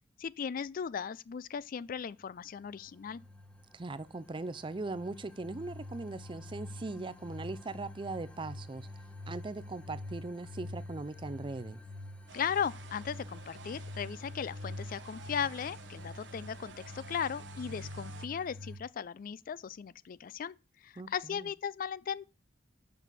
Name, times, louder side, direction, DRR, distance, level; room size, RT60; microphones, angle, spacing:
voice 1, 0.2-3.2 12.3-20.5 20.8-22.2, left 7 dB, 45° left, 0.4 m, -37 dB
sound 1, 2.5-18.8, left 1 dB, 5° left, 1.0 m, -46 dB
voice 2, 3.7-8.9 9.3-11.8 21.0-21.5, right 3 dB, 25° right, 0.5 m, -40 dB
sound 2, 12.3-18.3, right 5 dB, 65° right, 0.8 m, -52 dB
7.3 x 6.2 x 6.8 m
head